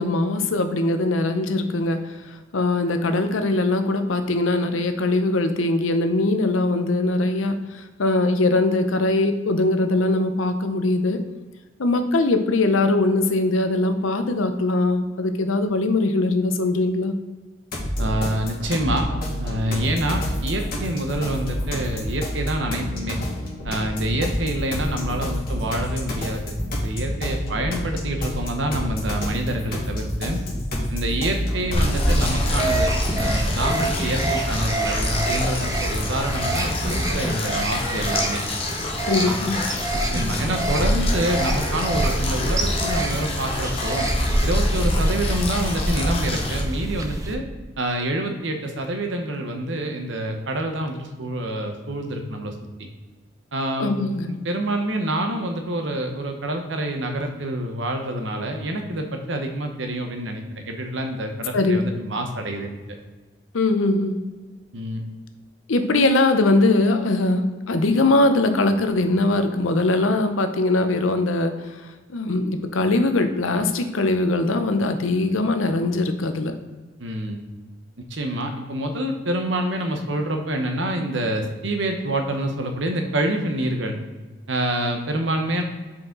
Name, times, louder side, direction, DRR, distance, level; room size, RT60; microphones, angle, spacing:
voice 1, 0.0-2.2 2.5-11.2 11.8-17.1 39.1-39.6 53.8-54.3 61.5-61.8 63.5-64.2 65.7-71.7 72.1-76.5, left 2 dB, 85° left, 8 dB, 0.7 m, -21 dB
sound 1, 17.7-32.7, equal, 45° left, 1.4 m, -28 dB
voice 2, 18.0-19.1 19.4-23.2 23.6-30.4 30.9-32.9 33.2-38.4 39.2-39.4 39.9-44.1 44.4-47.4 47.8-52.5 53.5-53.9 54.3-62.8 64.7-65.0 77.0-77.4 78.1-84.0 84.5-85.6, right 1 dB, 65° right, 4 dB, 0.9 m, -27 dB
sound 2, 31.7-46.6, left 1 dB, 30° left, 0.9 m, -25 dB
sound 3, 32.0-47.3, right 2 dB, 15° right, 0.4 m, -28 dB
5.7 x 5.1 x 3.8 m, 1.3 s
head